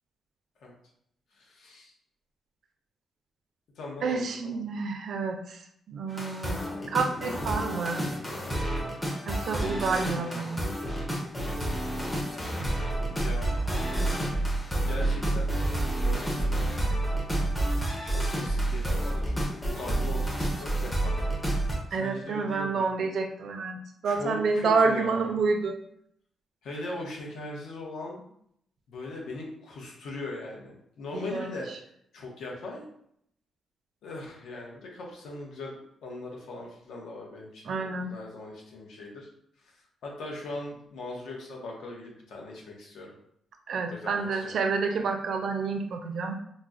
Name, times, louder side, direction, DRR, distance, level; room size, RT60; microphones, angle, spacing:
voice 1, 1.3-1.9 3.7-4.6 10.2-11.0 13.2-13.5 14.7-15.5 15.9-16.5 18.0-21.2 21.9-22.9 24.0-25.3 26.6-28.2 28.9-31.7 32.1-32.8 34.0-39.3 39.6-39.7 40.0-43.1 43.9-44.5, left 2 dB, 75° left, -1 dB, 0.8 m, -40 dB
voice 2, 4.0-5.6 5.9-6.6 6.9-8.1 9.3-10.6 21.9-25.8 31.1-31.5 37.7-38.1 43.7-46.4, right 4 dB, 55° right, 5 dB, 0.4 m, -29 dB
sound 1, 6.1-21.8, right 1 dB, 10° left, 0.5 m, -29 dB
3.9 x 2.0 x 2.4 m, 0.70 s
wide cardioid pair, 160°, 0 cm